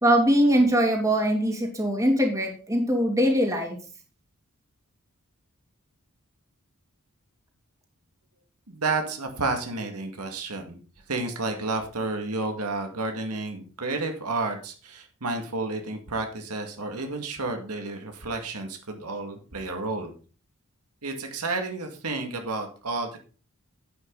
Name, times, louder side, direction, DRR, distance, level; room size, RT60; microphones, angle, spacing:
voice 1, 0.0-3.8, equal, 15° right, 2 dB, 2.6 m, -22 dB
voice 2, 8.7-10.8 11.1-20.1 21.0-23.2, right 3 dB, 85° right, 4 dB, 2.0 m, -31 dB
11.0 x 8.7 x 3.9 m, 0.37 s
head